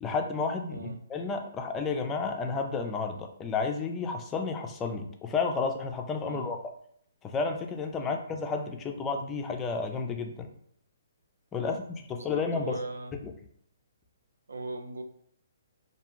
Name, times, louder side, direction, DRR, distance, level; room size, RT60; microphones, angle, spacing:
voice 1, 0.0-6.6 7.2-10.5 11.5-12.8, left 4 dB, 15° left, 4 dB, 0.4 m, -31 dB
voice 2, 0.7-1.0 6.3-6.5 8.0-8.2 11.6-11.8 12.1-13.1 14.5-15.0, right 3 dB, 85° right, 6 dB, 0.4 m, -39 dB
2.6 x 2.3 x 3.0 m, 0.64 s
hypercardioid pair, 140°, 0 cm